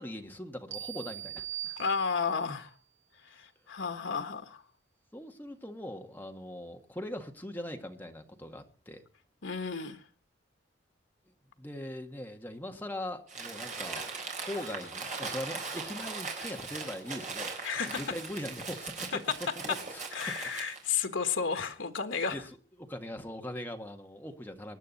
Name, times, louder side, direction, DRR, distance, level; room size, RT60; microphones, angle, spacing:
voice 1, 0.0-1.8 5.1-9.0 11.6-14.1 14.4-17.5 17.8-19.1 19.4-19.5 19.9-20.0 20.4-20.7 22.3-22.4 22.8-24.8, left 1 dB, 10° left, 4 dB, 1.6 m, -41 dB
sound 1, 0.7-2.5, right 11 dB, 75° right, 2.4 m, -41 dB
voice 2, 1.8-2.7 3.2-4.6 9.4-10.0 17.6-18.0 20.1-22.4, left 5 dB, 85° left, 8 dB, 1.5 m, -32 dB
Crumpling crinkling, 13.3-20.9, right 4 dB, 40° right, 4.2 m, -39 dB
24.0 x 9.9 x 4.1 m, 0.37 s
head